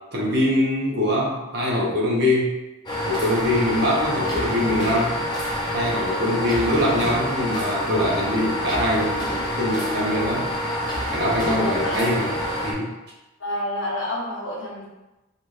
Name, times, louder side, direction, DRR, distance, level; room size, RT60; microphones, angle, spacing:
voice 1, 0.1-2.5 3.0-5.1 5.7-9.2 9.5-10.5 11.1-12.3 12.6-12.9, left 1 dB, 55° right, -4 dB, 1.0 m, -23 dB
sound 1, 2.9-12.7, equal, 20° left, 0.7 m, -27 dB
voice 2, 11.6-12.0 13.4-14.9, left 1 dB, 70° left, -5 dB, 1.1 m, -29 dB
4.6 x 2.5 x 3.1 m, 1.0 s
head